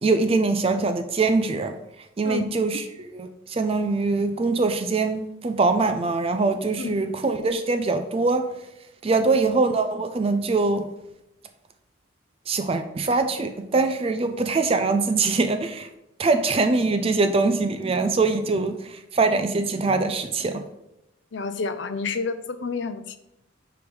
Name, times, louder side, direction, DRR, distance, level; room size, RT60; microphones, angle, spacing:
voice 1, 0.0-1.7 2.2-8.5 9.0-10.9 12.5-15.9 16.2-20.6, right 3 dB, 30° right, 7 dB, 0.4 m, -23 dB
voice 2, 21.3-23.2, left 4 dB, 60° left, 10 dB, 0.5 m, -29 dB
4.8 x 4.8 x 5.1 m, 0.87 s
head